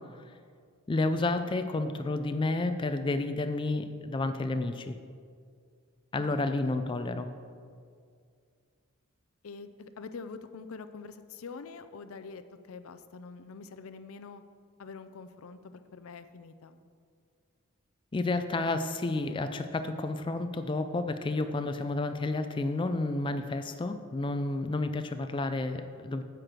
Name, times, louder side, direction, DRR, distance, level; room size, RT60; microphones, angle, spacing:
voice 1, 0.9-5.0 6.1-7.3 18.1-26.2, left 2 dB, 25° left, 8 dB, 0.4 m, -30 dB
voice 2, 6.2-6.9 9.4-12.4 12.7-14.4 14.8-15.6 15.9-16.8, left 4 dB, 75° left, 10 dB, 0.5 m, -45 dB
9.8 x 4.5 x 7.6 m, 2.2 s
head